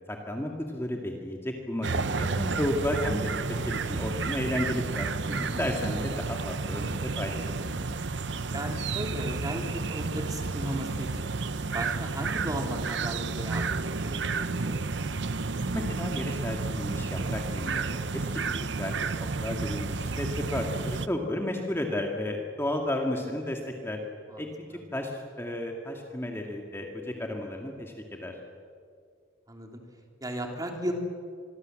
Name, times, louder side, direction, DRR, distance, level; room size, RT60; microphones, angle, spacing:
voice 1, 0.0-3.3 3.7-5.1 5.4-7.9 15.7-18.3 18.7-24.0 24.4-28.4, left 1 dB, 15° left, 1 dB, 2.0 m, -33 dB
sound 1, 1.8-21.1, right 4 dB, 65° right, 0.8 m, -31 dB
voice 2, 5.3-5.7 8.5-11.3 11.7-13.6 14.0-14.8 24.3-24.4 29.5-29.7 30.2-30.9, right 1 dB, 20° right, 3 dB, 3.2 m, -35 dB
26.0 x 23.0 x 7.7 m, 2.2 s
head